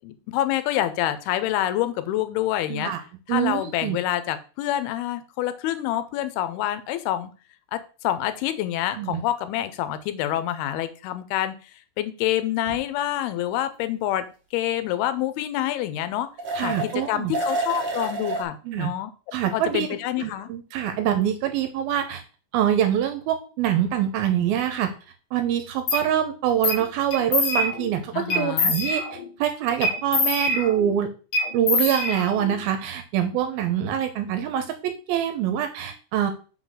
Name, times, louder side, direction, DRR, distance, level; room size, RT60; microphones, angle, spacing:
voice 1, 0.0-2.9 3.3-7.3 7.7-11.5 12.0-14.3 14.5-16.3 16.6-19.1 19.5-20.5 28.1-28.7, left 12 dB, 90° left, 12 dB, 2.7 m, -27 dB
voice 2, 2.7-3.0 3.3-4.0 8.9-9.2 16.6-17.3 18.6-18.9 19.3-19.9 20.2-22.2 22.5-24.9 25.3-29.0 29.4-31.1 31.5-36.3, right 10 dB, 80° right, 7 dB, 2.5 m, -25 dB
sound 1, 12.6-12.8 16.4-17.1 17.3-18.4, right 2 dB, 50° right, 1.4 m, -28 dB
sound 2, 25.9-26.0 26.6-26.8 27.1-27.9 28.3-29.3 29.8-31.0 31.3-32.6, left 3 dB, 65° left, 1.3 m, -25 dB
5.9 x 3.9 x 6.2 m, 0.36 s
omnidirectional pair, 4.4 m